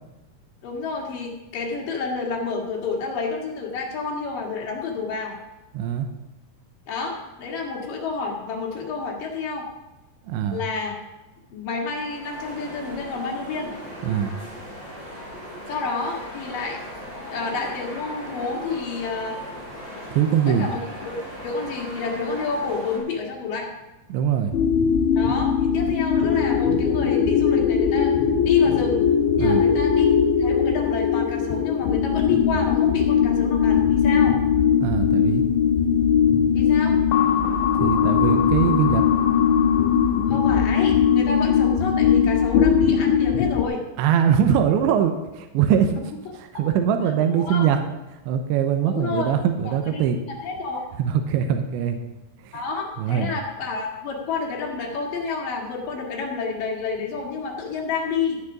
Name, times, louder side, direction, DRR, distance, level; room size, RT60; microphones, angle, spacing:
voice 1, 0.6-5.4 6.9-9.7 10.5-10.9 11.5-13.7 15.7-16.8 17.3-19.4 20.5-20.8 21.1-23.7 25.2-28.1 28.4-29.1 29.4-30.1 30.4-34.4 36.5-37.0 40.3-43.8 46.5-46.6 47.4-47.6 48.9-49.3 49.6-50.0 50.4-50.8 52.5-58.4, left 4 dB, 55° left, -1 dB, 3.0 m, -29 dB
voice 2, 5.7-6.1 10.3-10.6 14.0-14.3 20.1-20.7 24.1-24.5 29.4-29.6 34.8-35.4 37.8-39.0 44.0-46.0 46.6-47.8 48.3-50.2 51.0-52.0 52.5-52.6 53.0-53.4, right 8 dB, 80° right, 6 dB, 3.0 m, -22 dB
sound 1, 11.9-23.0, equal, 15° right, 4.0 m, -38 dB
sound 2, 24.5-43.6, left 7 dB, 75° left, 3.0 m, -20 dB
13.5 x 7.3 x 6.1 m, 1.0 s
omnidirectional pair, 5.4 m